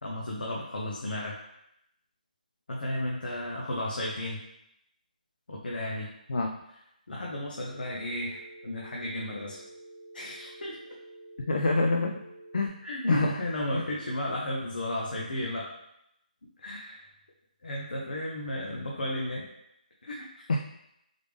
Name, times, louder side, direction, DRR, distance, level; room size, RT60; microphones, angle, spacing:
voice 1, 0.0-1.4 2.7-4.4 5.5-6.1 7.1-9.6 10.1-10.8 12.8-15.7 16.6-17.0 17.6-19.4 20.0-20.4, left 1 dB, 85° left, -3 dB, 0.8 m, -34 dB
Telephone, 7.7-12.7, right 1 dB, 15° right, 0.5 m, -49 dB
voice 2, 11.5-12.1 12.5-12.8 13.1-13.4 13.7-13.8 20.5-20.6, left 2 dB, 60° left, 2 dB, 0.4 m, -26 dB
3.8 x 3.3 x 3.3 m, 0.81 s
hypercardioid pair, 175°, 5 cm